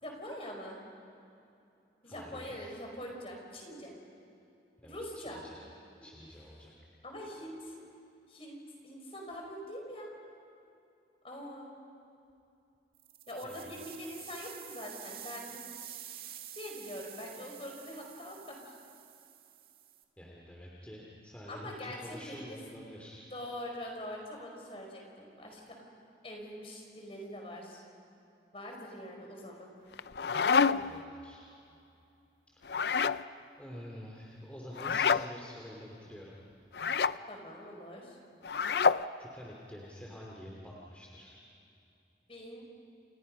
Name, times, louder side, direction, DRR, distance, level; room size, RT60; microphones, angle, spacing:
voice 1, 0.0-0.8 2.0-3.9 4.8-5.4 7.0-7.7 8.3-10.1 11.2-11.7 13.3-16.0 16.5-18.7 21.5-22.6 23.3-25.8 26.2-27.8 28.5-29.7 37.3-38.2 42.3-42.6, equal, 30° left, 1 dB, 5.0 m, -44 dB
voice 2, 2.0-2.7 4.8-5.6 6.0-6.7 13.4-13.7 20.2-23.2 30.5-31.4 32.5-32.6 33.6-36.4 39.2-41.4, equal, 5° left, -3 dB, 2.7 m, -48 dB
sound 1, 12.9-20.0, right 11 dB, 55° right, 1.8 m, -49 dB
sound 2, 29.9-31.0 32.6-33.2 34.8-35.3 36.7-37.2 38.4-39.1, left 5 dB, 65° left, 0.5 m, -27 dB
30.0 x 28.5 x 5.5 m, 2.7 s
head